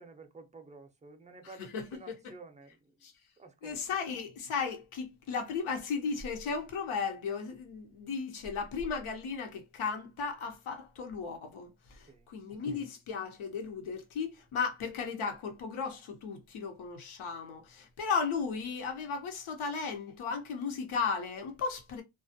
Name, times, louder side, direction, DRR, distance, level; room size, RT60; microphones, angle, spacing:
voice 1, 0.0-2.9 3.4-3.8 12.1-12.3, right 3 dB, 15° right, 0.5 m, -51 dB
voice 2, 1.6-2.3 3.0-3.1 3.6-22.0, left 5 dB, 75° left, 0.9 m, -35 dB
2.3 x 2.1 x 2.6 m
cardioid pair, 65°, 49 cm